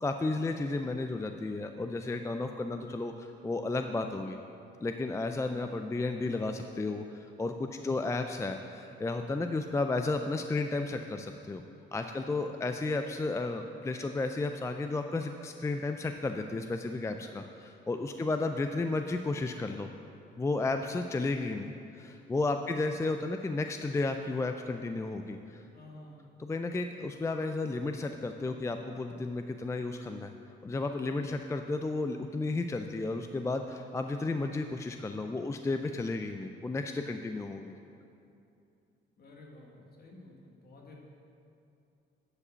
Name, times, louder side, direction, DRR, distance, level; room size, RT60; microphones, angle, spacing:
voice 1, 0.0-4.4 4.8-11.6 11.9-19.9 20.4-25.6 26.5-30.3 30.6-37.7, left 3 dB, 15° left, 6 dB, 0.4 m, -33 dB
voice 2, 7.7-8.0 12.1-12.5 18.1-18.2 20.6-20.9 22.5-22.9 25.7-26.3 39.2-41.0, left 2 dB, 50° left, -1 dB, 1.8 m, -52 dB
9.7 x 4.8 x 6.9 m, 2.6 s
cardioid pair, 90°, 20 cm